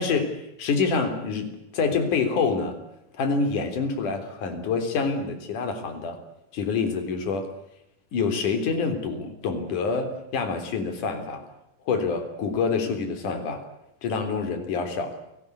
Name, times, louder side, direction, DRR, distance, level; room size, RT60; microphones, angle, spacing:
voice 1, 0.0-2.8 3.2-6.2 6.5-7.5 8.1-11.4 11.9-13.6 14.0-15.2, left 4 dB, 55° left, 6 dB, 5.0 m, -26 dB
29.0 x 19.5 x 8.2 m, 0.83 s
omnidirectional pair, 4.3 m